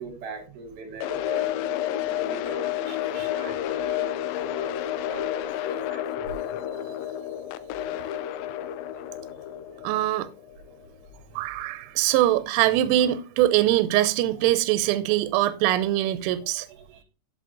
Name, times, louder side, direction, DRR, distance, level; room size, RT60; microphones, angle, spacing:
voice 1, 0.0-6.7 10.8-11.6 11.9-12.2 16.7-17.0, right 3 dB, 60° right, 3.7 m, -42 dB
sound 1, 1.0-11.1, left 11 dB, 90° left, 3.2 m, -30 dB
voice 2, 9.8-10.3 11.4-16.7, right 14 dB, 90° right, 3.1 m, -23 dB
11.0 x 7.5 x 2.5 m
omnidirectional pair, 5.7 m